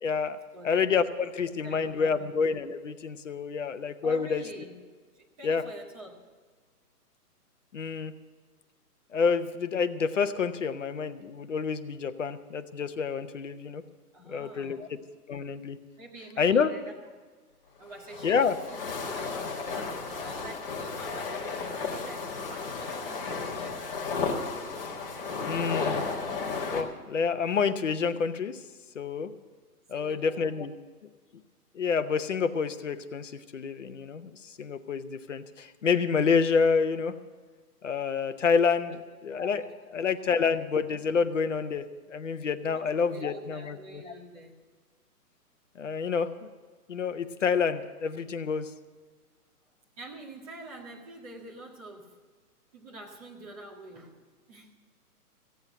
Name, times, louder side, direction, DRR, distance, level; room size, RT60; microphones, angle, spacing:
voice 1, 0.0-0.4 0.6-4.4 5.4-5.6 7.7-8.1 9.1-13.8 14.3-14.9 15.3-15.8 16.4-16.7 18.2-18.6 25.4-26.0 26.5-28.6 28.9-29.3 29.9-30.7 31.7-37.1 37.8-44.1 45.8-46.5 46.9-48.7, left 5 dB, 50° left, 10 dB, 0.9 m, -28 dB
voice 2, 1.6-2.2 4.0-4.7 5.1-6.1 14.1-15.0 16.0-16.9 17.8-24.3 29.9-30.4 38.9-39.2 39.5-40.0 42.7-44.6 50.0-52.2 52.7-54.7, right 1 dB, 25° right, -2 dB, 1.9 m, -47 dB
sound 1, 17.8-26.8, left 4 dB, 35° left, 1.6 m, -33 dB
15.5 x 8.1 x 7.9 m, 1.5 s
hypercardioid pair, 175°, 47 cm